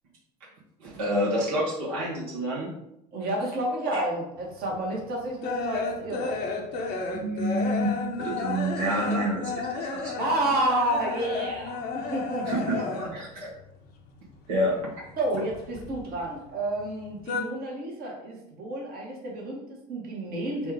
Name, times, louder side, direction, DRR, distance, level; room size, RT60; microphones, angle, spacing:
voice 1, 0.8-2.7 3.9-4.0 7.1-10.2 12.4-13.5 14.5-15.0, right 1 dB, 75° right, -5 dB, 1.1 m, -28 dB
voice 2, 3.1-6.4 10.2-12.7 15.2-20.7, right 1 dB, 50° right, -1 dB, 1.2 m, -30 dB
sound 1, 4.6-13.3 13.6-14.8 15.1-16.5 16.8-17.4, left 4 dB, 55° left, 0.7 m, -32 dB
4.2 x 2.3 x 3.5 m, 0.81 s
hypercardioid pair, 65°, 20 cm